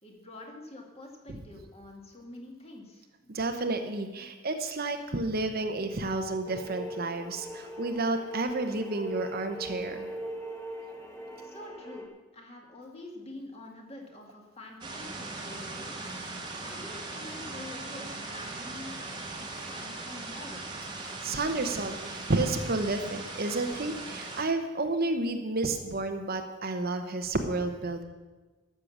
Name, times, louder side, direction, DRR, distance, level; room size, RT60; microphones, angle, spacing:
voice 1, 0.0-3.4 11.4-15.9 16.6-19.0 19.6-20.7, left 1 dB, 30° left, 1 dB, 2.0 m, -46 dB
voice 2, 3.3-10.1 21.0-28.0, right 2 dB, 45° right, 6 dB, 0.9 m, -31 dB
sound 1, 6.5-12.1, equal, 15° left, 1.1 m, -40 dB
sound 2, 14.8-24.4, right 2 dB, 20° right, 1.4 m, -39 dB
13.0 x 6.8 x 7.2 m, 1.3 s
head